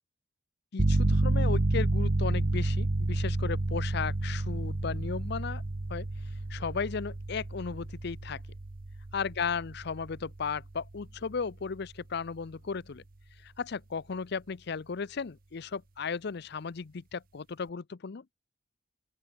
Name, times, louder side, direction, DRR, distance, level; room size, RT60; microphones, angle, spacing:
voice 1, 0.7-5.6 5.9-6.1 6.5-8.4 9.1-13.0 13.4-18.2, left 5 dB, 60° left, 0.6 m, -35 dB
sound 1, 0.8-11.3, right 2 dB, 50° right, 0.9 m, -30 dB
open air
head